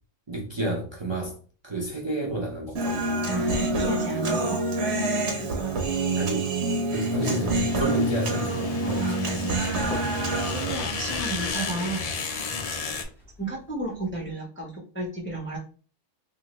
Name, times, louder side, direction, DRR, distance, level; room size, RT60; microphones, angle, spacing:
voice 1, 0.3-1.4 1.6-3.3 6.1-6.5 6.9-9.2, right 1 dB, 30° right, 0.6 m, -30 dB
Human voice, 2.8-10.8, right 2 dB, 70° right, 1.1 m, -27 dB
voice 2, 3.2-4.6 8.8-9.5 10.5-12.1 13.4-15.6, right 2 dB, 15° left, 0.5 m, -32 dB
sound 1, 7.2-13.0, left 4 dB, 75° left, 0.3 m, -33 dB
sound 2, 8.4-14.3, equal, ahead, 1.1 m, -45 dB
2.8 x 2.4 x 3.0 m
omnidirectional pair, 1.2 m